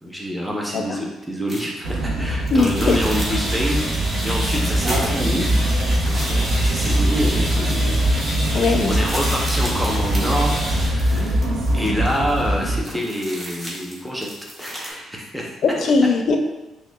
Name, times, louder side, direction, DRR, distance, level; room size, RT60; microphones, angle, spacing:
voice 1, 0.0-5.5 6.0-7.7 8.8-11.4 11.7-14.3 14.6-15.5, equal, ahead, -2 dB, 0.8 m, -27 dB
sound 1, 1.5-1.8 2.4-3.4 3.6-3.7 4.0-7.7 8.1-8.2 8.4-14.9, equal, 20° right, 1.1 m, -36 dB
sound 2, 1.8-12.8, right 1 dB, 80° right, 0.6 m, -22 dB
voice 2, 2.5-3.0 8.5-8.9 15.6-16.4, left 4 dB, 60° left, 4 dB, 0.4 m, -19 dB
sound 3, 2.7-10.9, right 1 dB, 50° right, 1.3 m, -29 dB
5.8 x 2.2 x 2.3 m, 1.0 s
cardioid pair, 90°, 0 cm